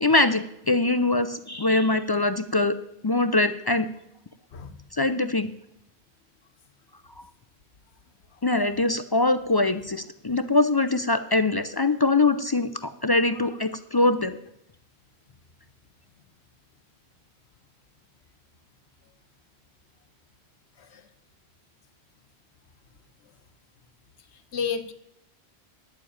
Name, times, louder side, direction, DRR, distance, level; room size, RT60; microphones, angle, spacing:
voice 1, 0.0-2.8 3.0-3.9 4.9-5.5 8.4-14.4, left 2 dB, 35° left, 11 dB, 0.4 m, -23 dB
voice 2, 24.5-24.9, left 6 dB, 90° left, 9 dB, 1.3 m, -31 dB
10.5 x 7.4 x 8.7 m, 0.81 s
omnidirectional pair, 1.1 m